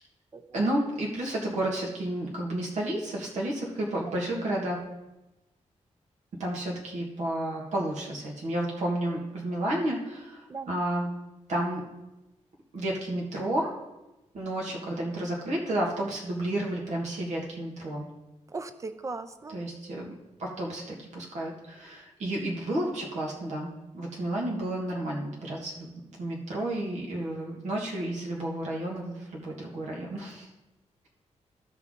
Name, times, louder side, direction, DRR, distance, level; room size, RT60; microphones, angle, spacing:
voice 1, 0.5-4.8 6.4-11.1 11.5-11.8 12.7-13.7 14.3-18.1 19.5-20.1 20.4-23.7 23.9-30.5, right 1 dB, 75° right, -2 dB, 1.9 m, -31 dB
voice 2, 18.5-19.6, right 3 dB, 25° right, 11 dB, 0.5 m, -38 dB
13.0 x 5.9 x 3.8 m, 1.0 s
wide cardioid pair, 160°, 12 cm